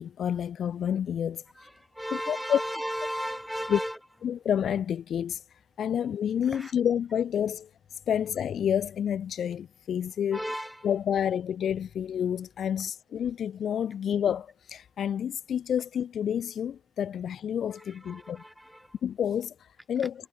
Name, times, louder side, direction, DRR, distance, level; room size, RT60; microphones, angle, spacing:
voice 1, 0.0-1.4 2.3-2.6 3.7-3.8 4.2-5.4 5.8-7.7 8.1-10.4 10.8-18.4 19.0-20.1, left 9 dB, 45° left, 0.7 m, -29 dB
voice 2, 1.5-4.0 5.9-6.0 6.4-6.7 10.3-10.9 17.7-19.0, equal, ahead, 3.8 m, -35 dB
cardioid pair, 115°, 0 cm